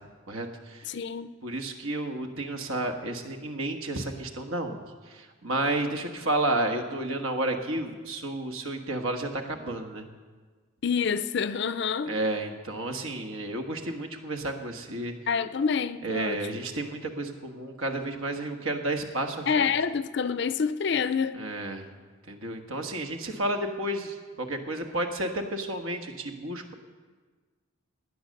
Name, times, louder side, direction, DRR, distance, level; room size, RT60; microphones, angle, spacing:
voice 1, 0.3-0.9 1.4-10.0 12.1-15.1 16.0-19.7 21.4-21.9 22.3-26.7, right 2 dB, 75° right, 1.6 m, -31 dB
voice 2, 0.9-1.3 10.8-12.1 15.3-16.4 19.5-21.4, left 6 dB, 55° left, 0.5 m, -27 dB
17.5 x 9.9 x 6.5 m
head